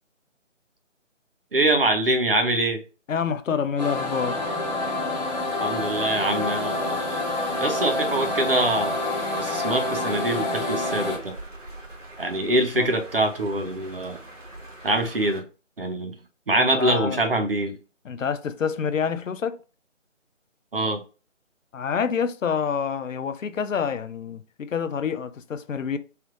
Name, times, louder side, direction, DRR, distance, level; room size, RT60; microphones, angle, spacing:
voice 1, 1.5-2.8 5.6-7.2 7.6-9.0 9.4-11.4 12.2-14.2 14.8-15.5 15.8-16.1 16.5-17.7 20.7-21.0, right 1 dB, 45° right, 0.6 m, -24 dB
voice 2, 3.1-4.4 12.7-12.9 16.6-17.2 18.0-19.6 21.7-26.0, left 6 dB, 80° left, 0.5 m, -27 dB
sound 1, 3.8-11.2, left 2 dB, 35° left, 1.0 m, -27 dB
sound 2, 3.9-15.4, right 1 dB, 70° right, 1.5 m, -43 dB
3.3 x 2.3 x 3.0 m
figure-of-eight pair, 155°, 38 cm